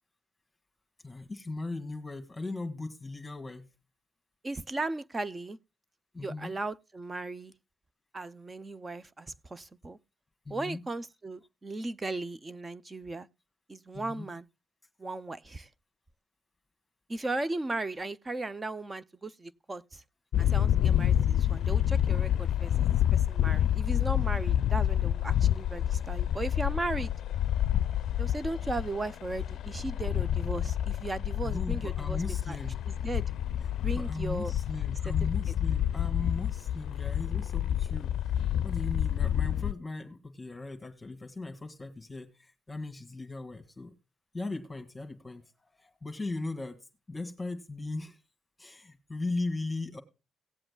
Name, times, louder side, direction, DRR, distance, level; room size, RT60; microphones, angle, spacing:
voice 1, 1.0-3.7 6.1-6.6 10.5-10.8 13.9-14.3 31.4-32.9 33.9-38.1 38.6-43.9 44.3-45.5 45.8-48.2 48.6-50.0, left 2 dB, 15° left, 1.7 m, -38 dB
voice 2, 4.4-5.6 6.2-7.5 8.1-10.0 10.5-13.3 13.7-14.5 15.0-15.7 17.1-20.0 20.4-27.1 28.2-32.6 32.9-33.3 33.8-34.5 35.0-35.1, right 2 dB, 25° right, 0.6 m, -36 dB
sound 1, 20.3-39.7, left 11 dB, 70° left, 0.4 m, -28 dB
18.0 x 7.8 x 2.3 m
cardioid pair, 90°, 0 cm